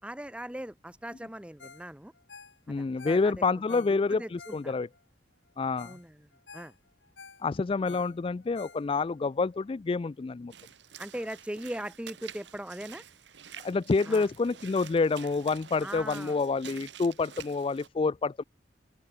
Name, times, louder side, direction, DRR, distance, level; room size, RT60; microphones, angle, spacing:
voice 1, 0.0-2.1 2.8-3.3 3.7-4.8 5.8-6.3 6.5-6.7 7.9-8.0 11.0-13.1 14.1-14.3 15.8-16.4, right 1 dB, 5° right, 0.9 m, -40 dB
Ringtone, 1.6-5.0 5.5-5.6 5.8-6.0 6.3-9.2 9.6-9.7, left 5 dB, 90° left, 3.9 m, -51 dB
voice 2, 2.7-4.9 5.6-6.0 7.4-10.5 13.6-18.4, left 4 dB, 30° left, 0.3 m, -28 dB
Walk footsteps / Splash splatter, 10.5-17.9, right 9 dB, 80° right, 1.4 m, -48 dB
open air
head